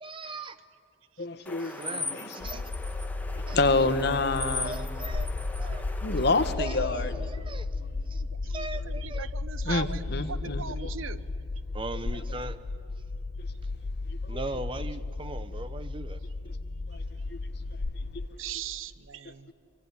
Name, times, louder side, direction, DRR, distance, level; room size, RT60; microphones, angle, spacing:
voice 1, 0.0-0.6 1.6-2.6 3.5-3.9 4.6-5.9 6.6-7.7 8.1-8.2 8.5-9.2 11.7-12.6 14.3-16.2, right 2 dB, 25° right, 0.9 m, -39 dB
voice 2, 1.2-2.5 3.5-4.8 6.0-7.2 7.8-8.0 9.6-10.9 14.1-14.4 16.9-17.0 17.3-17.4 18.1-18.3 19.2-19.3, left 3 dB, 50° left, 1.2 m, -28 dB
sound 1, 1.5-6.5, left 2 dB, 10° left, 1.4 m, -39 dB
sound 2, 2.4-18.3, left 3 dB, 75° left, 0.6 m, -34 dB
voice 3, 8.1-11.3 18.4-19.5, right 7 dB, 80° right, 0.9 m, -39 dB
25.0 x 24.0 x 9.7 m
head